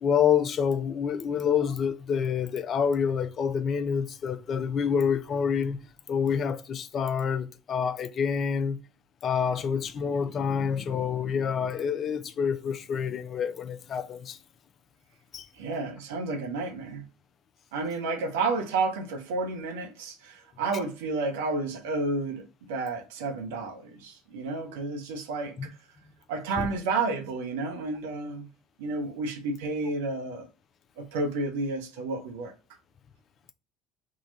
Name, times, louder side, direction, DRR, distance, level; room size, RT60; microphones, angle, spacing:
voice 1, 0.0-5.8 6.1-8.8 9.2-14.4 15.3-15.5 25.6-25.7 26.6-26.7, left 7 dB, 40° left, 0.4 m, -27 dB
voice 2, 15.6-17.0 17.7-25.7 26.3-28.5 28.8-30.5 31.0-32.5, right 3 dB, 65° right, 0.7 m, -31 dB
3.8 x 2.3 x 3.9 m
figure-of-eight pair, 60°, 0 cm